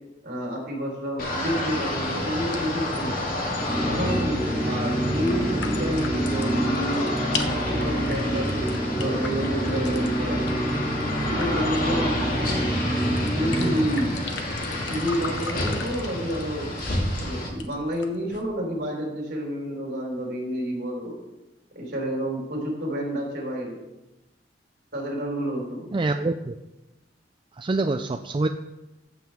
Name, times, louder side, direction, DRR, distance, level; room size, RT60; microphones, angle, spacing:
voice 1, 0.2-3.3 3.9-7.1 7.7-10.5 11.2-12.4 13.3-14.2 14.6-16.7 17.2-21.2 21.7-23.8 24.9-25.9, equal, 60° right, -1 dB, 4.4 m, -29 dB
sound 1, 1.2-17.5, left 1 dB, 50° left, 2.4 m, -29 dB
sound 2, 2.5-18.4, left 5 dB, 90° left, 1.1 m, -41 dB
sound 3, 3.5-13.9, right 1 dB, ahead, 2.8 m, -27 dB
voice 2, 25.9-26.5 27.6-28.5, right 2 dB, 30° right, 7 dB, 0.4 m, -25 dB
14.5 x 7.7 x 3.6 m, 0.99 s
head